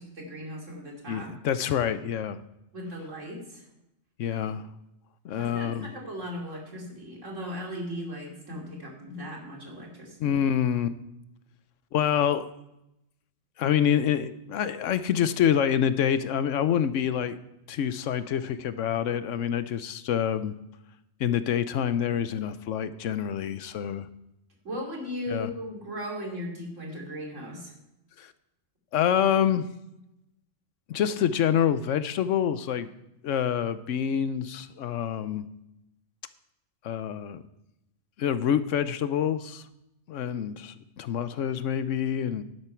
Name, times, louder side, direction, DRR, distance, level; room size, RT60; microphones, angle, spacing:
voice 1, 0.0-1.3 2.7-3.7 5.4-10.4 24.6-27.7, equal, 90° right, -1 dB, 3.1 m, -37 dB
voice 2, 1.1-2.4 4.2-4.7 5.2-5.9 10.2-11.0 11.9-12.4 13.6-17.4 17.7-20.6 21.2-24.1 25.3-25.5 28.2-28.3 28.9-29.7 30.9-32.9 33.2-35.5 36.8-37.4 38.2-39.6 40.1-42.4, left 9 dB, 85° left, 13 dB, 1.1 m, -26 dB
11.0 x 11.0 x 4.5 m, 0.87 s
omnidirectional pair, 1.2 m